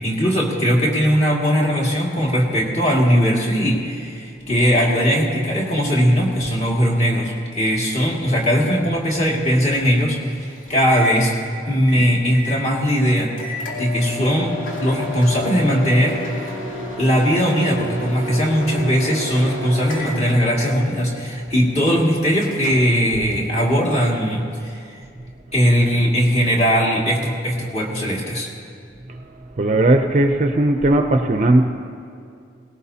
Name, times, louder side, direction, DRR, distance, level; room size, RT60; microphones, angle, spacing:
voice 1, 0.0-11.3 11.6-13.3 13.8-16.2 17.0-25.0 25.5-28.5, equal, 35° left, -3 dB, 2.2 m, -19 dB
Microwave oven, 8.3-23.9, left 1 dB, 75° left, 2.9 m, -32 dB
voice 2, 29.6-31.7, right 1 dB, 40° right, 6 dB, 0.5 m, -17 dB
18.5 x 17.5 x 2.8 m, 2.4 s
head